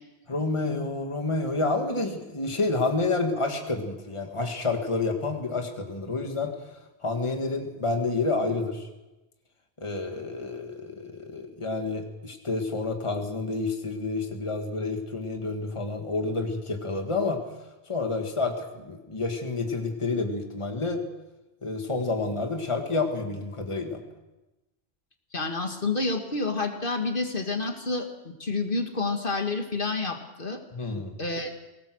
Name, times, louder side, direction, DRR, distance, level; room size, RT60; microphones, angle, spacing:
voice 1, 0.3-6.7 7.0-8.9 9.8-17.4 17.9-21.1 21.6-24.0 30.7-31.1, left 3 dB, 30° left, 4 dB, 1.8 m, -29 dB
voice 2, 25.3-30.6 31.2-31.5, left 3 dB, 55° left, 4 dB, 2.1 m, -29 dB
22.0 x 18.5 x 6.3 m, 1.0 s
omnidirectional pair, 1.1 m